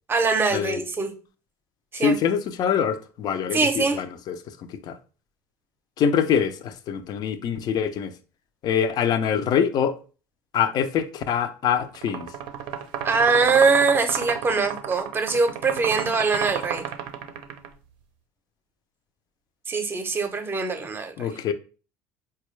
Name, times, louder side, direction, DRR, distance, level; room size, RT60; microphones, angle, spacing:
voice 1, 0.1-1.1 1.9-2.2 3.5-4.0 13.0-16.8 19.7-21.3, right 4 dB, 25° right, 0.6 m, -22 dB
voice 2, 2.0-5.0 6.0-8.1 8.6-10.0 10.5-12.3 21.2-21.5, left 7 dB, 50° left, 0.4 m, -24 dB
sound 1, 11.9-17.7, right 8 dB, 70° right, 0.5 m, -32 dB
4.0 x 2.3 x 3.1 m
supercardioid pair, 95°, 9 cm